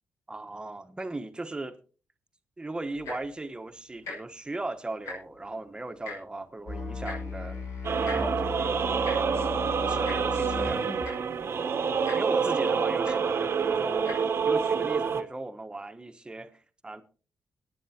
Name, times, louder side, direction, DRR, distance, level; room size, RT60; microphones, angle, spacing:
voice 1, 0.3-1.8 2.6-7.6 8.0-8.8 9.9-10.9 12.2-14.2 14.5-17.0, right 2 dB, 20° right, 1.2 m, -38 dB
Tick-tock, 2.9-3.3 4.0-4.2 4.5-4.6 4.9-5.4 6.0-6.2 7.0-7.2 8.0-8.2 9.0-9.2 10.0-10.2 10.8-10.9 11.0-11.3 12.0-12.2 13.0-13.2 14.0-14.2 14.9-15.0, left 3 dB, 85° left, 6.3 m, -38 dB
Musical instrument, 6.7-11.2, left 3 dB, 60° left, 5.6 m, -36 dB
sound 1, 7.8-15.2, right 6 dB, 55° right, 1.0 m, -27 dB
22.5 x 9.5 x 2.9 m
cardioid pair, 80°, 5 cm